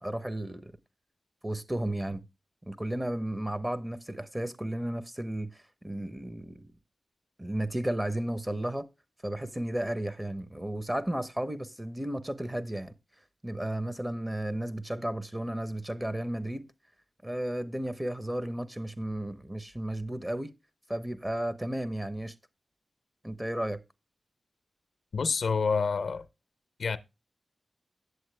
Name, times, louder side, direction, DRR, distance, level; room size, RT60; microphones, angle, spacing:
voice 1, 0.0-0.8 1.4-2.2 2.6-6.7 7.4-8.9 9.2-12.9 13.4-16.7 17.2-20.5 20.9-22.3 23.2-23.8, right 1 dB, 15° right, 0.8 m, -33 dB
voice 2, 25.1-26.2 26.8-27.0, left 5 dB, 75° left, 0.6 m, -27 dB
7.9 x 7.4 x 3.3 m
cardioid pair, 50°, 0 cm